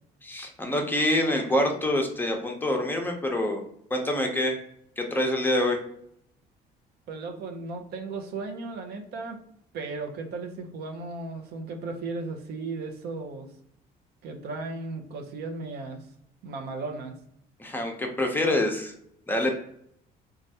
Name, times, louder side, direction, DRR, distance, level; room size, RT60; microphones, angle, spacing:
voice 1, 0.2-3.6 3.9-4.6 5.0-5.8 17.6-18.9 19.3-19.5, left 1 dB, 10° left, 2 dB, 0.6 m, -26 dB
voice 2, 7.1-9.4 9.7-13.5 14.2-16.1 16.4-17.1, right 3 dB, 70° right, 4 dB, 0.6 m, -35 dB
3.2 x 2.3 x 2.7 m, 0.69 s
cardioid pair, 110°, 17 cm